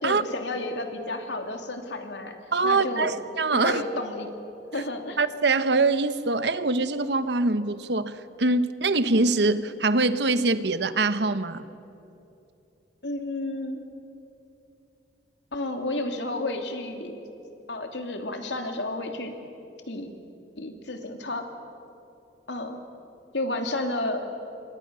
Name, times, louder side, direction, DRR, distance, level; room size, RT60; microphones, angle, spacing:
voice 1, 0.0-2.4 2.6-3.1 3.5-4.3 4.7-5.2 13.0-13.8 15.5-17.2 17.7-19.3 19.9-20.1 20.6-21.4 22.5-22.8 23.3-24.2, left 2 dB, 90° left, 2.8 m, -31 dB
voice 2, 2.5-3.8 5.2-11.6, right 3 dB, 70° right, 1.1 m, -24 dB
28.5 x 24.5 x 6.9 m
head